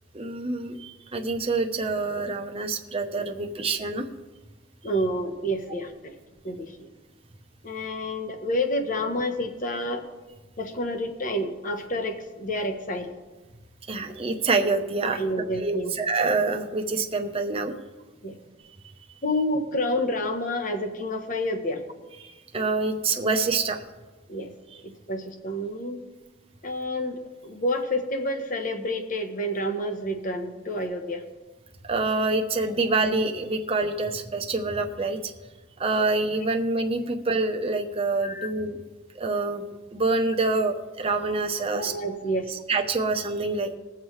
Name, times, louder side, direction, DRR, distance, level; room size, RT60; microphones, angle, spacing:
voice 1, 0.1-4.1 4.8-4.9 13.9-15.2 15.6-17.8 22.2-23.8 31.8-35.3 35.8-38.8 39.1-41.9 42.5-43.8, right 3 dB, 30° right, 4 dB, 0.9 m, -26 dB
voice 2, 4.8-6.1 6.4-6.9 7.6-10.0 10.6-13.1 15.1-15.9 18.2-18.4 19.2-21.8 24.3-24.5 24.8-26.0 26.6-31.2 38.2-38.5 41.7-42.5, left 1 dB, 40° left, 5 dB, 1.1 m, -29 dB
20.5 x 7.2 x 3.2 m, 1.2 s
head